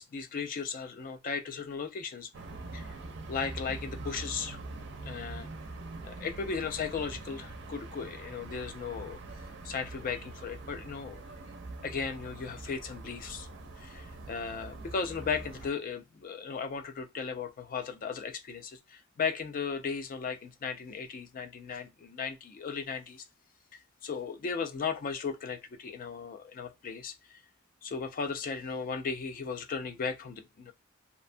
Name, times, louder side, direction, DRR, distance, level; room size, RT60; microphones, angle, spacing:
voice 1, 0.0-2.3 2.7-2.9 3.3-4.6 5.0-5.5 6.0-9.2 9.6-11.2 11.8-13.5 13.8-23.2 23.7-27.4 27.8-30.7, left 5 dB, 40° left, 0.3 m, -36 dB
sound 1, 2.3-15.7, right 2 dB, 55° right, 0.4 m, -44 dB
2.6 x 2.2 x 2.6 m
head